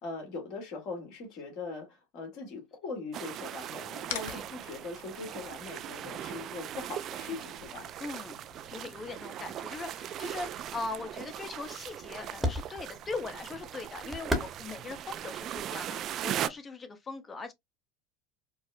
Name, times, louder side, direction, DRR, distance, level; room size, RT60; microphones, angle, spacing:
voice 1, 0.0-7.9, left 3 dB, 55° left, 1.5 m, -41 dB
sound 1, 3.1-16.5, right 11 dB, 45° right, 0.3 m, -39 dB
sound 2, 4.0-11.0, left 10 dB, 75° left, 0.6 m, -48 dB
voice 2, 4.1-4.4 8.0-8.4 8.6-17.5, left 3 dB, 25° left, 0.8 m, -40 dB
sound 3, 10.3-16.6, equal, 5° right, 1.0 m, -39 dB
4.7 x 2.0 x 2.5 m
hypercardioid pair, 95°, 0 cm